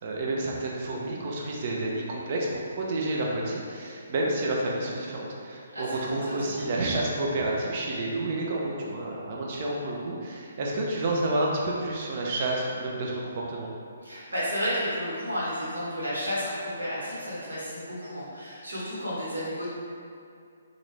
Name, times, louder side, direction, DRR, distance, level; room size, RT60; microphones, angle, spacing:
voice 1, 0.0-13.7, right 2 dB, 40° right, -3 dB, 0.6 m, -30 dB
voice 2, 5.7-6.5 14.0-19.7, equal, 70° right, -9 dB, 1.3 m, -32 dB
3.9 x 2.6 x 3.2 m, 2.4 s
figure-of-eight pair, 135°, 0 cm